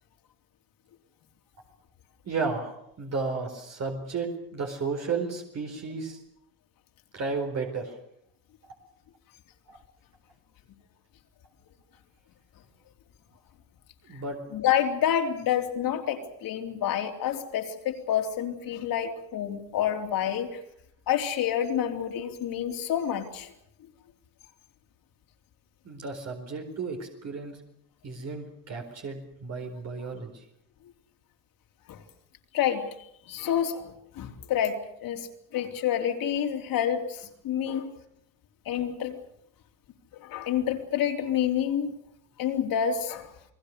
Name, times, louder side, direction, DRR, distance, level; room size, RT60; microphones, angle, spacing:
voice 1, 2.2-6.2 7.1-8.0 14.0-14.4 25.8-27.6 28.0-30.5, right 4 dB, 45° right, 2 dB, 4.4 m, -33 dB
voice 2, 14.5-20.6 21.1-23.5 31.9-32.0 32.5-32.8 33.3-34.7 35.0-35.3 35.5-37.9 38.7-39.1 40.2-41.9 42.4-43.3, left 9 dB, 65° left, 4 dB, 3.6 m, -28 dB
29.5 x 20.0 x 6.6 m, 0.73 s
cardioid pair, 110°, 36 cm